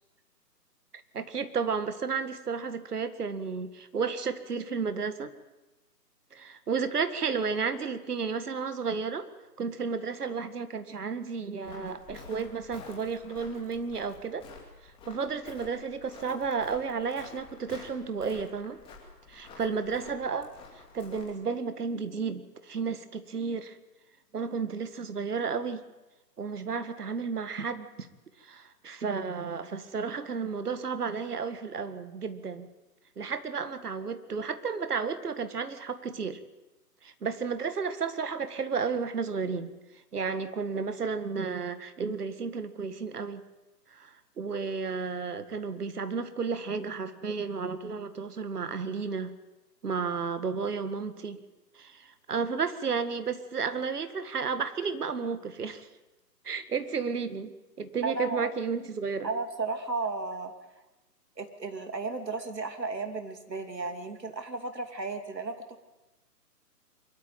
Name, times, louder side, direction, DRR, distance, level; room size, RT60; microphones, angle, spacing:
voice 1, 1.1-5.3 6.3-9.3 9.6-14.5 14.8-18.8 19.3-20.5 20.9-23.8 24.3-25.8 26.4-28.1 28.4-32.7 33.2-36.4 37.0-39.7 40.1-43.4 43.9-49.3 49.8-51.4 51.8-55.9 56.4-59.3, right 5 dB, 65° right, 11 dB, 1.9 m, -32 dB
Walk footsteps, 11.6-21.4, left 4 dB, 10° left, 2.5 m, -50 dB
voice 2, 58.0-58.5 59.2-60.5 61.4-65.8, right 3 dB, 90° right, 6 dB, 3.0 m, -34 dB
23.5 x 13.0 x 9.0 m, 1.1 s
figure-of-eight pair, 150°, 49 cm